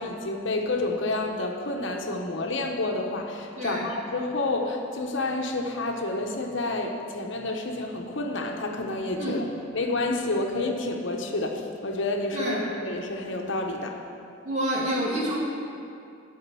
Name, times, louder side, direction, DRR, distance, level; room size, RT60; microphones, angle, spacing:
voice 1, 0.0-9.4 9.7-14.0, left 2 dB, 70° left, 2 dB, 0.9 m, -29 dB
voice 2, 12.3-12.7 14.4-15.4, right 1 dB, 35° right, -5 dB, 2.2 m, -28 dB
11.5 x 5.1 x 7.6 m, 2.6 s
head